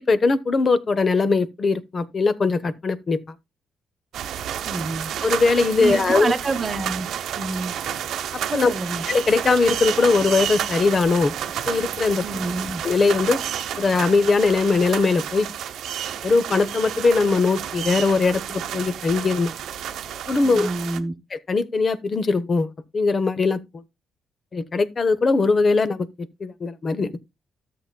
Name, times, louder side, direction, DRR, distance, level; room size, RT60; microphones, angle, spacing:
voice 1, 0.1-3.2 5.2-6.3 8.5-8.7 9.1-11.3 11.7-12.2 12.8-13.4 13.8-15.5 16.2-19.5 20.3-20.7 21.5-23.8 24.5-26.1 26.4-27.2, left 4 dB, 40° left, 0.8 m, -20 dB
sound 1, 4.1-21.0, right 10 dB, 80° right, 0.8 m, -30 dB
voice 2, 4.6-5.1 5.8-7.1 7.4-7.7 8.5-9.0 12.2-12.8 20.4-21.1, right 3 dB, 35° right, 1.0 m, -27 dB
13.0 x 7.6 x 2.2 m
cardioid pair, 95°, 0 cm